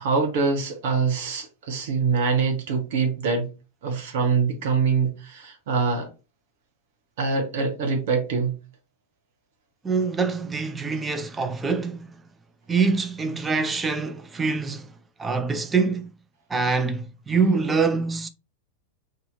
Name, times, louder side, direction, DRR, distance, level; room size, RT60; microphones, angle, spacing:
voice 1, 0.0-3.5 3.8-6.1 7.2-8.6, right 5 dB, 55° right, 0.8 m, -24 dB
voice 2, 9.8-12.1 12.7-14.9 15.2-16.1 16.5-18.3, right 4 dB, 15° right, 0.4 m, -24 dB
2.8 x 2.6 x 3.8 m
figure-of-eight pair, 90°, 0 cm